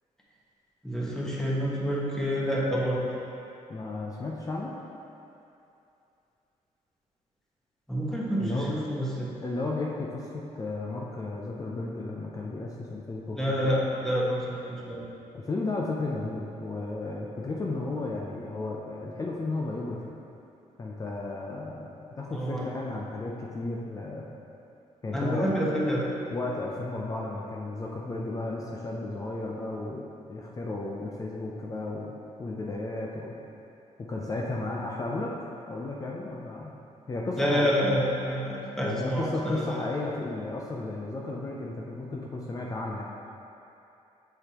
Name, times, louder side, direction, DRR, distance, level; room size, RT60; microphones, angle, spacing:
voice 1, 0.8-3.0 7.9-9.3 13.4-15.0 22.3-22.7 25.1-26.0 37.4-39.8, equal, 5° left, -6 dB, 1.3 m, -28 dB
voice 2, 3.7-4.7 8.4-8.7 9.4-13.7 15.3-20.1 20.8-21.9 22.2-24.3 25.0-25.5 25.8-25.9 26.3-33.3 34.0-35.3 35.7-36.7 37.1-37.9 38.8-43.1, left 2 dB, 25° left, -3 dB, 0.6 m, -34 dB
7.9 x 6.8 x 3.0 m, 2.8 s
cardioid pair, 135°, 13 cm